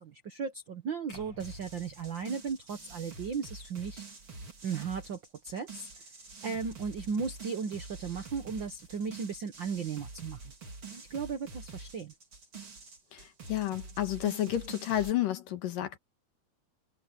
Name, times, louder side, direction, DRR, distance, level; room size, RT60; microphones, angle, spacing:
voice 1, 0.0-4.1 4.6-5.9 6.4-10.4 10.9-12.1, right 6 dB, 65° right, 1.1 m, -36 dB
sound 1, 1.1-3.4, left 2 dB, 50° left, 9.5 m, -54 dB
sound 2, 1.4-15.1, right 3 dB, 35° right, 4.5 m, -47 dB
voice 2, 13.1-16.0, left 12 dB, 75° left, 3.4 m, -31 dB
omnidirectional pair, 3.9 m